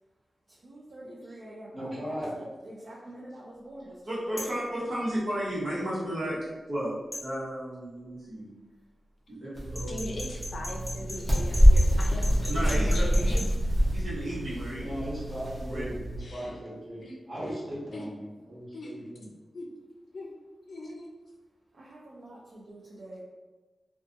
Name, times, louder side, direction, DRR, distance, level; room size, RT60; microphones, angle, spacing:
voice 1, 0.6-5.1 21.7-23.2, right 1 dB, 60° right, -6 dB, 0.4 m, -46 dB
voice 2, 1.7-2.3 14.8-17.0 17.3-19.3, equal, 35° right, -8 dB, 1.2 m, -37 dB
voice 3, 4.0-6.4 6.7-6.9 7.2-8.5 9.3-9.9 10.9-11.0 12.5-13.4 13.9-15.0 15.6-15.8, right 1 dB, 75° right, -9 dB, 1.1 m, -33 dB
sound 1, 4.4-4.6 7.1-7.3 9.7-13.5, left 1 dB, 5° left, 0.9 m, -38 dB
sound 2, 9.6-16.2, equal, 20° right, 0.9 m, -25 dB
voice 4, 9.8-13.4 16.2-16.5 17.0-17.5 17.9-18.1 18.7-18.9 19.5-19.7 20.1-20.3 20.7-21.1, left 1 dB, 65° left, -1 dB, 0.5 m, -40 dB
2.5 x 2.3 x 2.5 m, 1.2 s
wide cardioid pair, 100°, 0 cm